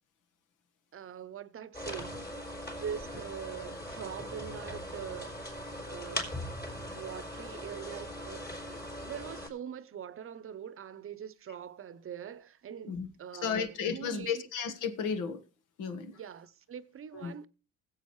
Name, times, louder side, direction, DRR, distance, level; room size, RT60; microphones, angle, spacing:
voice 1, 0.9-2.3 2.7-5.4 5.9-6.5 6.9-8.5 8.8-14.4 16.1-17.5, right 8 dB, 45° right, 0.7 m, -43 dB
sound 1, 1.7-9.5, equal, 35° left, 4.4 m, -40 dB
voice 2, 13.3-15.4 15.8-16.2 17.1-17.3, left 6 dB, 90° left, 1.5 m, -33 dB
20.5 x 8.0 x 3.1 m
cardioid pair, 90°, 30 cm